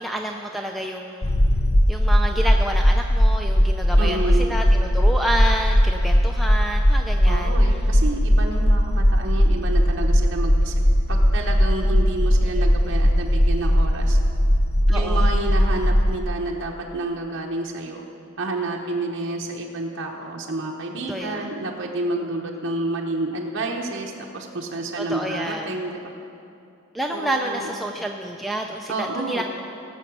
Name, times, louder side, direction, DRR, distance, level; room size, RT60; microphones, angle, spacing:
voice 1, 0.0-1.4 1.9-7.8 12.4-12.7 14.9-15.3 21.1-21.5 25.0-25.7 26.9-29.4, right 1 dB, ahead, 2 dB, 0.4 m, -29 dB
sound 1, 1.2-16.2, equal, 40° left, 0.7 m, -19 dB
voice 2, 4.0-4.6 7.3-10.7 11.1-14.2 14.9-18.1 18.4-26.0 27.1-27.7 28.9-29.4, right 2 dB, 60° right, -1 dB, 1.0 m, -29 dB
17.5 x 7.1 x 6.1 m, 2.7 s
head